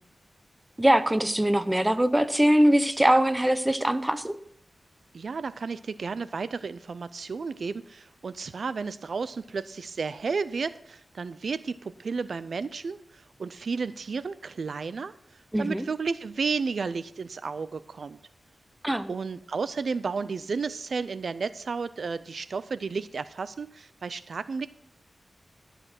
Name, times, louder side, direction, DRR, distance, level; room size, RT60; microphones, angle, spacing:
voice 1, 0.8-4.3 15.5-15.8 18.8-19.1, right 1 dB, 10° right, 12 dB, 0.8 m, -22 dB
voice 2, 5.1-18.2 19.1-24.7, right 5 dB, 70° right, 15 dB, 0.4 m, -32 dB
12.5 x 6.7 x 5.8 m, 0.68 s
wide cardioid pair, 90°, 0 cm